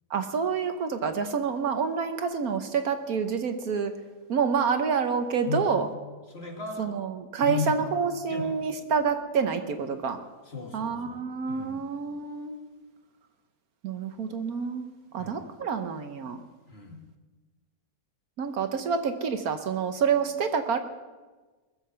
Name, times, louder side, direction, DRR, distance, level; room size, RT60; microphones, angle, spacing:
voice 1, 0.1-3.9 4.3-5.9 6.8-10.2 10.7-12.6 13.8-14.9 15.1-16.4 18.4-20.8, right 6 dB, 65° right, 8 dB, 1.3 m, -28 dB
voice 2, 6.3-6.9 7.4-7.8 8.3-8.5 10.4-11.8 15.2-15.4 16.7-17.0, left 4 dB, 40° left, 1 dB, 2.4 m, -35 dB
20.5 x 7.5 x 6.8 m, 1.3 s
omnidirectional pair, 1.7 m